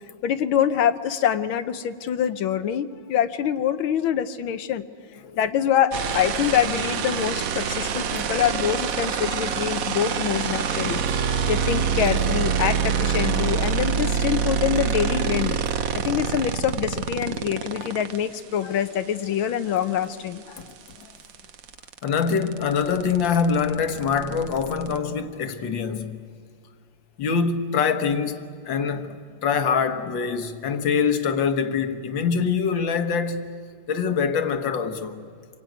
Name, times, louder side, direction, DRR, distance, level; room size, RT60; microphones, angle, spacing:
voice 1, 0.2-4.8 5.3-15.6 15.9-20.7, left 9 dB, 85° left, 1.7 m, -25 dB
sound 1, 5.9-18.2 20.3-20.4 20.6-25.0, right 6 dB, 55° right, 1.1 m, -26 dB
voice 2, 22.0-26.2 27.2-33.6 33.9-35.3, left 6 dB, 70° left, 1.9 m, -24 dB
26.5 x 23.0 x 9.2 m
omnidirectional pair, 2.2 m